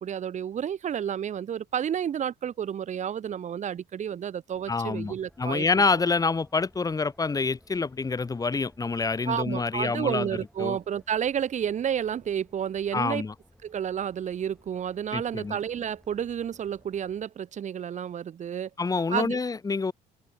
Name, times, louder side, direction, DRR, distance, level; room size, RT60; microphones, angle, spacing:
voice 1, 0.0-5.7 9.3-13.2 13.6-18.7 19.1-19.4, right 9 dB, 45° right, 1.5 m, -31 dB
sound 1, 4.5-17.3, equal, ahead, 7.2 m, -59 dB
voice 2, 4.7-10.3 10.6-10.8 12.9-13.3 15.1-15.6 18.8-19.9, left 4 dB, 20° left, 1.7 m, -27 dB
open air
cardioid pair, 110°, 17 cm